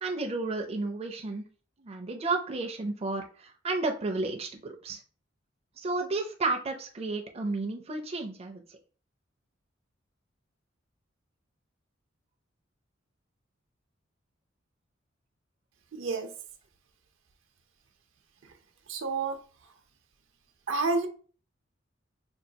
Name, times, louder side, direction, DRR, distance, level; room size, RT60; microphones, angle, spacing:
voice 1, 0.0-1.4 1.8-5.0 5.8-8.6, right 3 dB, 30° right, 3 dB, 0.5 m, -32 dB
voice 2, 15.9-16.3 18.4-18.5 18.9-19.4 20.7-21.1, right 3 dB, 75° right, 5 dB, 0.6 m, -29 dB
5.4 x 2.3 x 2.7 m, 0.40 s
head